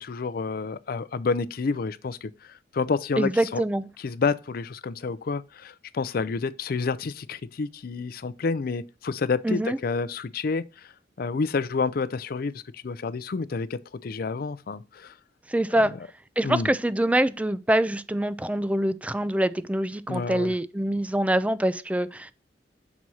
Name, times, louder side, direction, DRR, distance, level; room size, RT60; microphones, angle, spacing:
voice 1, 0.0-3.6 4.0-10.9 11.2-15.1 15.7-15.8 16.4-16.7 20.1-20.5, left 4 dB, 55° left, 0.4 m, -29 dB
voice 2, 3.2-3.9 9.4-9.8 15.5-15.9 16.4-22.3, right 1 dB, 10° right, 0.3 m, -25 dB
6.0 x 4.1 x 6.2 m
head